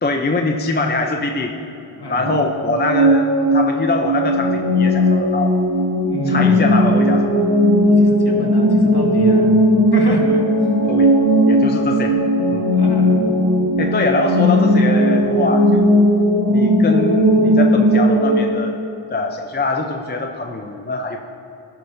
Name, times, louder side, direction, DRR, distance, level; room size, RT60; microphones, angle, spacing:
voice 1, 0.0-1.6 2.1-5.6 6.3-7.4 10.9-11.1 11.5-12.2 12.5-12.7 13.8-15.9 16.5-18.8 19.1-21.2, left 2 dB, 20° left, 3 dB, 0.5 m, -23 dB
voice 2, 2.0-2.4 6.0-6.7 7.8-11.0 12.7-13.3, left 2 dB, 50° left, 0 dB, 1.3 m, -28 dB
sound 1, 2.2-18.5, equal, 55° right, 1.6 m, -16 dB
16.0 x 5.6 x 2.6 m, 2.9 s
wide cardioid pair, 65°, 48 cm